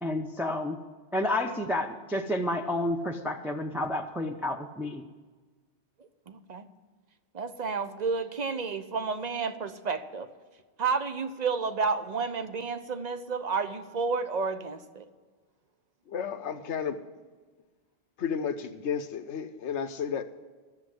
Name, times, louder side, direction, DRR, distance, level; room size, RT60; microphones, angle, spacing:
voice 1, 0.0-0.8 1.1-5.0, left 1 dB, ahead, 0.6 m, -30 dB
voice 2, 6.0-6.7 7.3-10.3 10.8-15.1, right 4 dB, 45° right, 0.8 m, -31 dB
voice 3, 16.1-17.0 18.2-20.2, left 7 dB, 90° left, 1.1 m, -32 dB
13.0 x 7.4 x 7.8 m
omnidirectional pair, 1.1 m